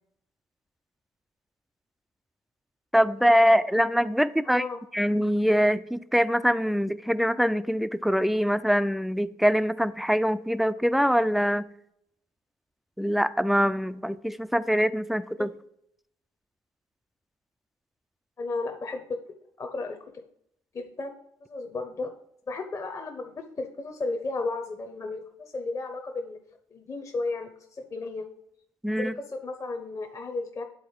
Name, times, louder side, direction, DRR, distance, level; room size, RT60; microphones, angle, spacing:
voice 1, 2.9-4.6 4.9-11.6 13.0-15.5 28.8-29.1, equal, ahead, 13 dB, 0.4 m, -23 dB
voice 2, 4.4-4.8 15.4-15.5 18.4-19.2 19.6-20.2 20.7-21.1 21.5-22.1 22.5-26.4 26.7-28.3 29.0-30.6, left 3 dB, 30° left, 5 dB, 0.8 m, -34 dB
10.0 x 4.1 x 3.2 m, 0.74 s
figure-of-eight pair, 45°, 10 cm